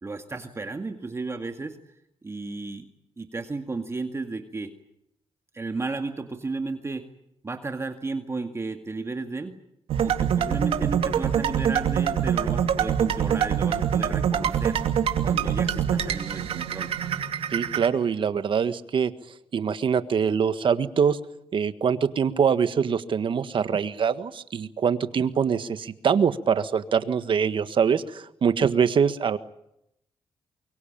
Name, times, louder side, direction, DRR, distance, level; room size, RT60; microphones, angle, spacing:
voice 1, 0.0-2.0 2.2-2.8 3.2-4.7 5.5-7.1 7.4-9.6 10.0-14.8 15.2-16.9, right 3 dB, 30° right, 5 dB, 2.1 m, -33 dB
sound 1, 9.9-17.9, right 8 dB, 80° right, 2.6 m, -25 dB
voice 2, 17.5-19.1 19.5-21.2 21.5-29.4, right 7 dB, 60° right, 11 dB, 1.6 m, -24 dB
24.0 x 23.0 x 8.9 m, 0.79 s
cardioid pair, 85°, 10 cm